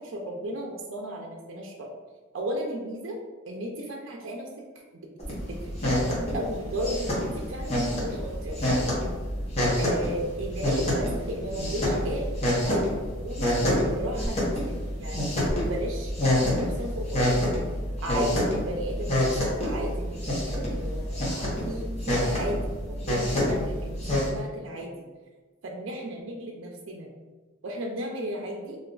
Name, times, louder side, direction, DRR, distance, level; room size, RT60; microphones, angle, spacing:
voice 1, 0.0-1.9 2.3-3.2 3.4-4.6 5.3-9.0 9.8-13.6 13.9-15.3 15.7-17.4 18.0-25.0 25.6-27.1 27.6-28.8, right 1 dB, 70° right, 0 dB, 0.4 m, -35 dB
sound 1, 5.2-24.3, left 1 dB, 35° left, 0.9 m, -27 dB
2.5 x 2.3 x 3.7 m, 1.3 s
head